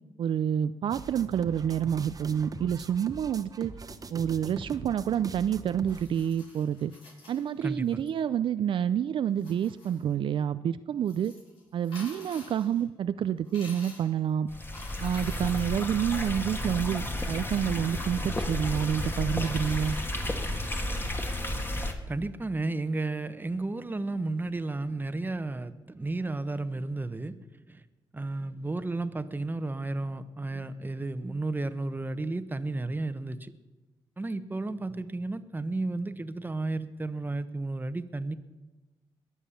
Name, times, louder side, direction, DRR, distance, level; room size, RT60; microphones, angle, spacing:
voice 1, 0.2-3.7 4.1-6.9 7.3-11.3 11.7-14.5 15.0-20.0, right 9 dB, 70° right, 12 dB, 0.4 m, -28 dB
sound 1, 0.9-6.0, right 4 dB, 40° right, 1.1 m, -42 dB
sound 2, 5.8-8.1 9.3-10.1 11.0-12.8 13.4-14.2 14.6-17.3 18.8-18.9 19.4-20.8, left 2 dB, 85° left, 6.4 m, -51 dB
voice 2, 7.6-8.0 22.1-27.8 28.1-33.5 34.2-38.3, right 2 dB, 20° right, 12 dB, 1.0 m, -33 dB
sound 3, 14.5-21.9, left 1 dB, 25° left, 1.9 m, -32 dB
21.5 x 7.2 x 7.2 m, 1.1 s
cardioid pair, 65°, 9 cm